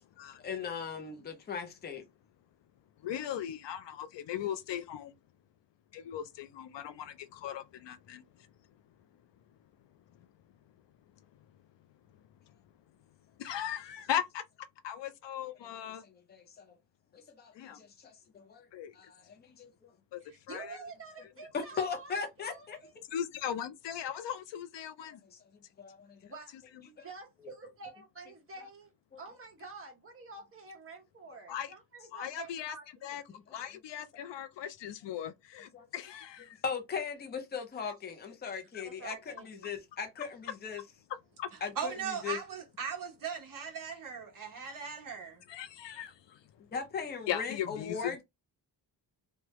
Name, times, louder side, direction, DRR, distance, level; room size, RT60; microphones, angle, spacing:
voice 1, 0.4-2.0 16.0-16.8 17.1-18.7 18.9-19.9 21.5-22.8 25.2-26.2 27.0-27.1 35.7-35.9 36.6-40.8 41.6-42.4 46.6-48.2, left 6 dB, 25° left, 0.5 m, -39 dB
voice 2, 3.0-5.1 5.9-8.5 10.2-10.3 13.4-14.4 14.8-16.0 17.5-17.8 18.7-18.9 20.1-20.8 23.1-25.2 31.5-31.7 32.1-32.8 33.0-33.2 33.5-36.6 38.7-38.8 41.4-41.5 45.5-46.4 47.3-48.2, left 10 dB, 75° left, 0.6 m, -38 dB
voice 3, 20.2-22.9 26.2-26.5 27.0-28.9 29.2-33.2 38.8-39.7, right 3 dB, 30° right, 1.2 m, -48 dB
voice 4, 41.7-45.4, right 7 dB, 50° right, 1.0 m, -38 dB
3.2 x 2.2 x 2.9 m
wide cardioid pair, 165°, 43 cm